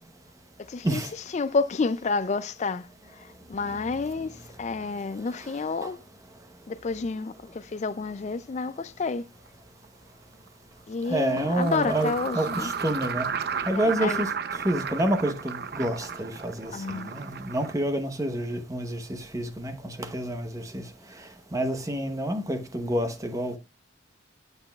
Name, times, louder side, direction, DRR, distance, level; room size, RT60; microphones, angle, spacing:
voice 1, 0.7-1.0 1.3-2.9 3.1-6.0 6.7-9.2 10.9-12.7 13.7-14.2 16.7-17.1, left 4 dB, 35° left, 0.3 m, -30 dB
sound 1, 9.5-9.6 11.1-17.8, right 6 dB, 50° right, 0.6 m, -34 dB
voice 2, 11.1-13.3 13.6-20.8 21.5-23.6, right 1 dB, 15° right, 0.8 m, -28 dB
8.8 x 7.9 x 2.3 m
head